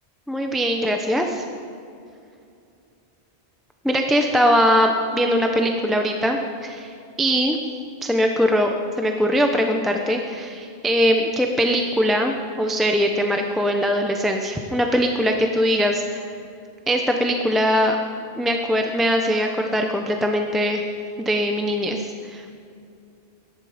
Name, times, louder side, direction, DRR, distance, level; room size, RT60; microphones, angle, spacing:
voice 1, 0.3-1.4 3.8-6.9 7.2-7.6 8.0-8.7 9.0-16.2 16.9-18.0 18.4-20.8 21.2-22.6, equal, ahead, 3 dB, 0.8 m, -21 dB
21.5 x 11.0 x 5.1 m, 2.5 s
omnidirectional pair, 1.1 m